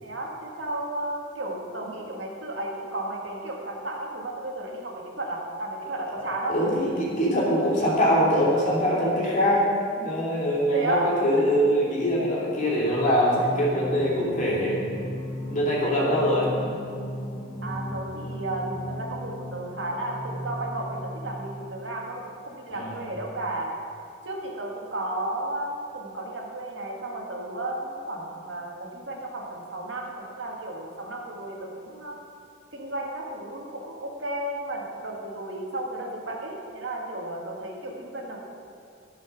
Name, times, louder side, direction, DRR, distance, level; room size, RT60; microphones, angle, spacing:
voice 1, 0.0-6.6 10.7-11.5 12.2-12.3 17.6-23.7 24.2-32.2 32.7-38.4, right 1 dB, 70° right, -1 dB, 1.7 m, -33 dB
voice 2, 6.5-9.7 10.0-14.8 15.5-16.5 22.7-23.0, equal, 40° left, -5 dB, 2.8 m, -23 dB
Singing, 12.8-21.7, equal, 5° left, 2.9 m, -36 dB
13.5 x 5.7 x 6.0 m, 2.4 s
head